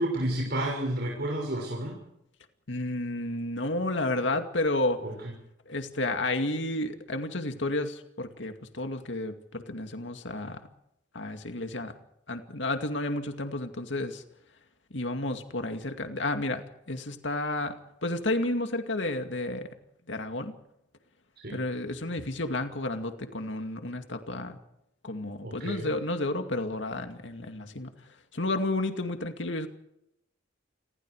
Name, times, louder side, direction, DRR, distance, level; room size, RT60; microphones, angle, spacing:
voice 1, 0.0-2.0 5.0-5.1 21.4-21.6 25.4-25.9, right 1 dB, 60° right, 0 dB, 6.3 m, -30 dB
voice 2, 2.7-5.0 5.7-10.7 11.1-11.9 12.3-14.2 14.9-19.7 20.1-20.5 21.5-24.6 25.0-27.9 28.3-29.7, left 2 dB, 75° left, 6 dB, 2.3 m, -31 dB
29.0 x 21.5 x 4.9 m, 0.80 s
head